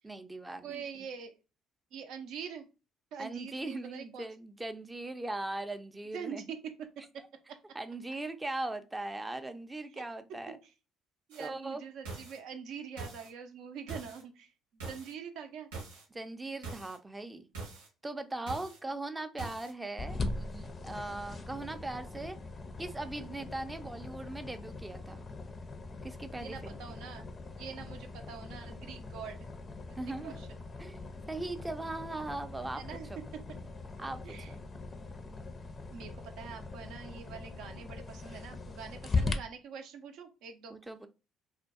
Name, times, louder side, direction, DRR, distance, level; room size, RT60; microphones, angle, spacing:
voice 1, 0.0-0.8 3.2-6.4 7.7-10.6 11.4-11.8 16.1-17.5 18.0-22.4 22.8-25.3 26.0-27.0 30.0-30.4 30.8-31.0 31.3-32.8 33.1-33.2 34.0-34.6 40.7-41.1, right 2 dB, 15° right, 9 dB, 0.4 m, -39 dB
voice 2, 0.6-1.3 1.9-2.7 3.1-4.3 6.1-6.6 7.0-7.8 9.9-10.0 10.6-10.7 11.3-15.7 26.3-27.3 27.6-29.5 29.9-30.0 30.2-30.5 32.7-33.1 34.2-34.5 35.9-40.8, right 7 dB, 70° right, 7 dB, 0.5 m, -45 dB
sound 1, 11.3-11.5 12.0-12.4 13.0-13.3 13.9-14.2 14.8-15.1 15.7-16.0 16.6-17.0 17.5-17.9 18.5-18.8 19.4-19.7, right 4 dB, 90° right, 0.9 m, -43 dB
sound 2, 20.0-39.3, left 3 dB, 40° left, 0.4 m, -40 dB
2.5 x 2.2 x 2.4 m, 0.31 s
hypercardioid pair, 60°, 0 cm